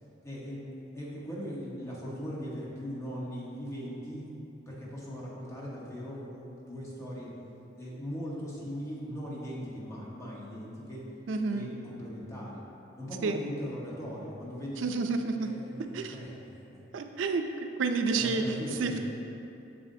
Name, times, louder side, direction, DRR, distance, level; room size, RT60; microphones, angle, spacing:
voice 1, 0.2-4.2 4.7-7.3 7.7-11.1 11.5-12.6 13.0-14.9 15.4-16.8 18.1-19.0, equal, 15° left, -6 dB, 1.2 m, -39 dB
voice 2, 11.3-11.7 13.2-13.4 14.8-15.5 15.9-16.1 16.9-17.4 17.8-18.4 18.8-19.0, right 4 dB, 85° right, 6 dB, 0.4 m, -29 dB
7.5 x 6.8 x 2.7 m, 2.8 s
head